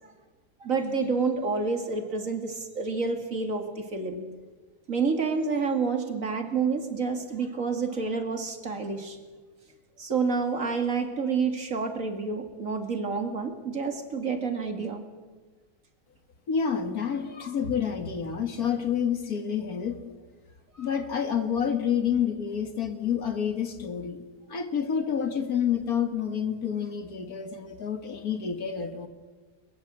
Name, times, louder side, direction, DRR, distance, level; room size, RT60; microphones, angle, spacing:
voice 1, 0.6-4.2 4.9-9.2 10.0-15.0 20.7-20.9, right 4 dB, 55° right, 6 dB, 2.7 m, -29 dB
voice 2, 16.5-20.0 20.8-24.2 24.5-29.1, left 7 dB, 65° left, 8 dB, 2.2 m, -28 dB
22.5 x 21.5 x 7.6 m, 1.3 s
omnidirectional pair, 1.7 m